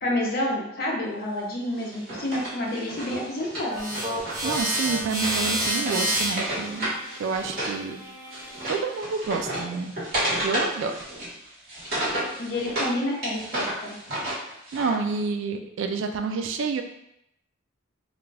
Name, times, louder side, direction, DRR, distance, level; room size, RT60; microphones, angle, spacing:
voice 1, 0.0-4.0 12.4-14.0, left 1 dB, 45° left, -2 dB, 0.6 m, -29 dB
Wood, 1.8-7.8 8.1-12.9 13.2-15.0, right 1 dB, 50° right, 1.2 m, -32 dB
sound 1, 3.7-8.8, right 1 dB, 15° right, 0.5 m, -30 dB
voice 2, 4.4-6.9 7.2-8.0 8.7-9.9 10.4-10.9 14.7-16.8, right 5 dB, 70° right, 6 dB, 0.3 m, -28 dB
2.4 x 2.2 x 3.2 m, 0.80 s
head